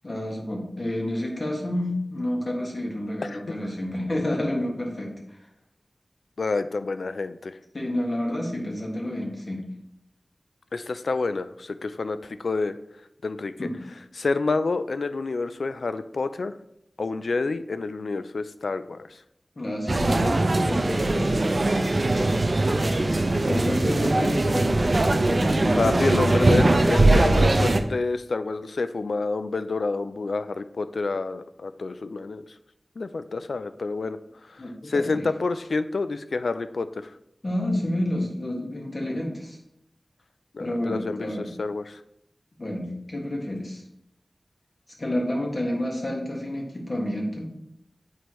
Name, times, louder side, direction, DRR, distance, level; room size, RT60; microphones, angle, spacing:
voice 1, 0.0-5.1 7.7-9.6 13.6-13.7 19.5-21.6 23.3-26.0 34.6-35.2 37.4-39.6 40.6-41.5 42.6-43.8 45.0-47.5, left 1 dB, 50° left, -1 dB, 1.6 m, -29 dB
voice 2, 6.4-7.6 10.7-12.8 13.2-13.5 14.2-16.5 17.0-19.2 25.8-32.4 33.0-37.2 40.5-42.0, left 3 dB, 85° left, 12 dB, 0.3 m, -28 dB
sound 1, 19.9-27.8, right 2 dB, 50° right, 0.5 m, -21 dB
8.4 x 4.6 x 3.1 m, 0.79 s
wide cardioid pair, 60°, 0 cm